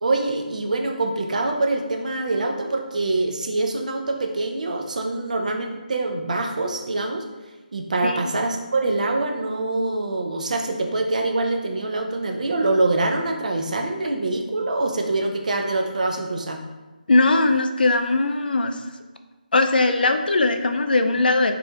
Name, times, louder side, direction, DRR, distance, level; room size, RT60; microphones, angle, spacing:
voice 1, 0.0-7.2 7.7-16.6, right 2 dB, 50° right, 3 dB, 0.4 m, -24 dB
voice 2, 17.1-18.8 19.5-21.5, left 2 dB, 80° left, 6 dB, 0.3 m, -20 dB
4.3 x 2.5 x 2.3 m, 1.2 s
figure-of-eight pair, 170°, 5 cm